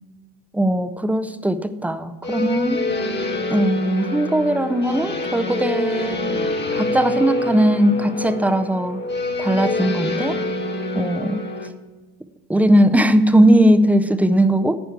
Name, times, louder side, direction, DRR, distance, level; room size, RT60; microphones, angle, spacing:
voice 1, 0.5-2.8 3.5-6.3 6.7-9.0 9.4-10.4 11.0-11.4 12.5-14.8, right 1 dB, 5° right, 10 dB, 0.5 m, -18 dB
sound 1, 2.2-11.7, left 1 dB, 25° left, 1.3 m, -26 dB
11.5 x 4.4 x 7.8 m, 1.3 s
hypercardioid pair, 70°, 44 cm